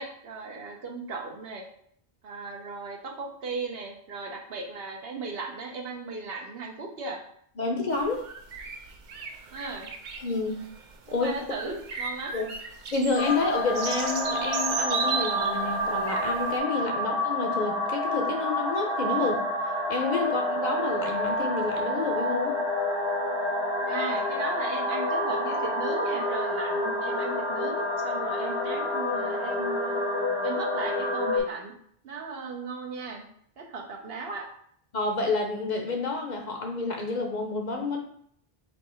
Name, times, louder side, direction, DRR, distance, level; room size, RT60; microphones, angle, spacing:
voice 1, 0.0-1.7 2.2-7.2 9.5-9.9 11.1-12.3 16.9-17.1 20.3-20.4 23.9-30.0 30.4-31.7 32.0-33.2 33.6-34.5, right 4 dB, 75° right, 1 dB, 1.0 m, -36 dB
voice 2, 7.6-8.3 10.2-10.6 11.1-11.3 12.3-12.5 12.9-19.5 19.9-22.6 34.9-38.0, left 3 dB, 50° left, 2 dB, 0.7 m, -29 dB
sound 1, 8.0-16.6, right 5 dB, 55° right, 0.6 m, -36 dB
sound 2, 13.2-31.4, left 1 dB, 85° left, 1.5 m, -28 dB
4.4 x 2.8 x 4.2 m, 0.66 s
omnidirectional pair, 1.0 m